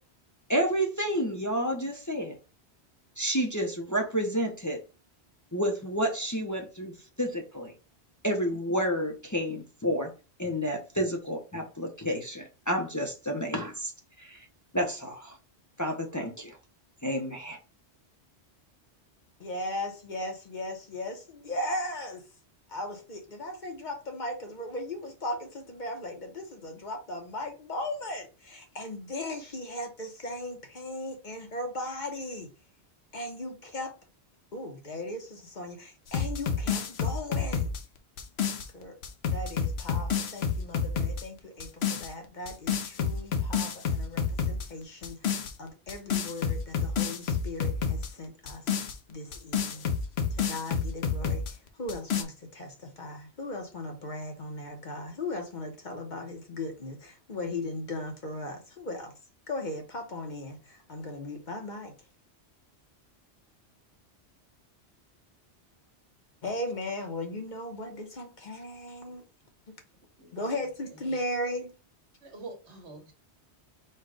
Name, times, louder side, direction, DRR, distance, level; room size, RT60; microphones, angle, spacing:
voice 1, 0.5-2.3 3.2-4.8 5.5-6.9 7.2-7.7 8.2-10.1 10.4-13.9 14.2-14.4 14.7-15.4 15.8-16.5 17.0-17.6, equal, 20° left, 0.7 m, -30 dB
voice 2, 19.4-22.2 22.7-32.5 33.1-33.9 34.5-37.7 38.7-39.0 39.3-48.7 49.1-49.9 50.3-59.1 59.5-61.9 66.4-69.2 69.7-69.8 70.3-71.7, left 1 dB, 45° left, 1.0 m, -37 dB
sound 1, 36.1-38.7 39.0-41.2 41.6-42.1 42.5-44.7 45.0-45.5 45.9-48.1 48.5-51.5 51.9-52.2, left 6 dB, 70° left, 1.0 m, -29 dB
voice 3, 72.2-73.1, right 3 dB, 80° right, 1.5 m, -45 dB
4.5 x 2.3 x 4.7 m
omnidirectional pair, 1.1 m